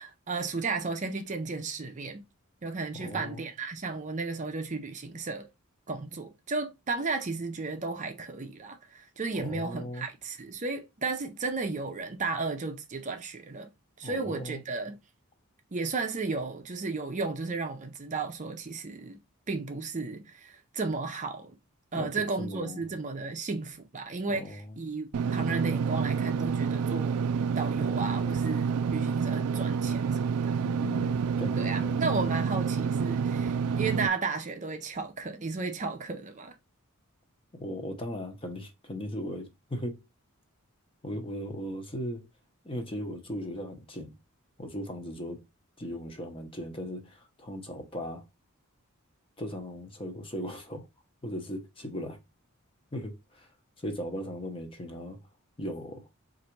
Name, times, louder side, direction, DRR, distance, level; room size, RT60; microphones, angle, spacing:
voice 1, 0.0-2.2 2.6-5.5 5.9-13.7 14.0-15.0 15.7-19.2 19.5-21.6 21.9-27.2 27.6-30.6 31.6-36.5, right 3 dB, 35° right, 0.6 m, -34 dB
voice 2, 2.9-3.4 9.3-10.1 14.0-14.6 21.9-22.8 24.3-24.8 30.6-32.4 37.5-40.0 41.0-42.3 42.6-44.2 44.6-45.4 45.8-48.2 49.4-50.9 51.2-52.2 52.9-53.5 53.8-55.2 55.6-56.1, equal, 25° left, 0.9 m, -38 dB
Engine / Mechanisms, 25.1-34.1, right 6 dB, 85° right, 0.3 m, -28 dB
4.0 x 2.6 x 4.4 m
head